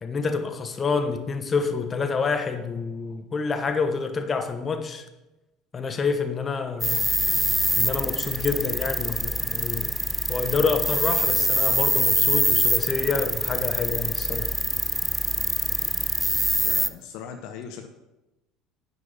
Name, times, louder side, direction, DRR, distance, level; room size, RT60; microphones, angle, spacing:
voice 1, 0.0-5.0 5.7-7.1 7.8-9.9 10.3-14.5, left 5 dB, 30° left, 7 dB, 1.0 m, -27 dB
sound 1, 6.8-16.9, equal, 5° right, 0.5 m, -24 dB
voice 2, 16.6-17.9, left 7 dB, 60° left, 6 dB, 0.6 m, -39 dB
9.6 x 5.2 x 5.5 m, 1.0 s
figure-of-eight pair, 65°, 0 cm